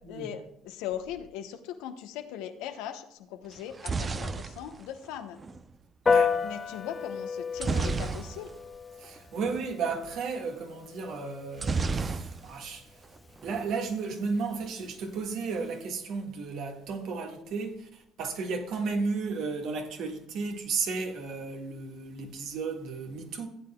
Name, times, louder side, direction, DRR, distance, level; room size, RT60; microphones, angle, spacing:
voice 1, 0.0-5.4 6.4-8.5, left 10 dB, 75° left, 1.0 m, -39 dB
sound 1, 3.5-5.6 7.6-8.7 9.0-9.2 9.4-9.6 11.6-12.7 13.0-13.6, right 4 dB, 35° right, 0.7 m, -32 dB
Piano, 6.1-15.8, left 5 dB, 30° left, 0.6 m, -34 dB
voice 2, 6.1-6.4 9.0-13.0 13.4-23.5, right 4 dB, 65° right, 1.7 m, -34 dB
15.5 x 8.6 x 2.3 m
hypercardioid pair, 65°, 0 cm